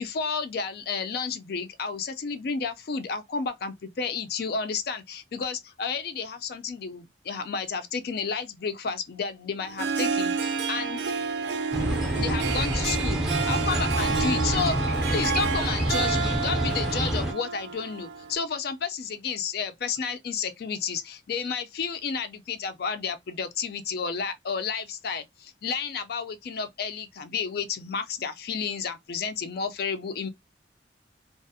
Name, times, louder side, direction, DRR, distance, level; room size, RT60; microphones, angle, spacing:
voice 1, 0.0-11.0 12.1-13.2 13.5-30.3, left 5 dB, 60° left, 0.4 m, -31 dB
Harp, 9.6-18.3, right 5 dB, 70° right, 0.4 m, -30 dB
sound 1, 11.7-17.3, right 1 dB, 5° right, 0.5 m, -27 dB
2.4 x 2.0 x 2.6 m
head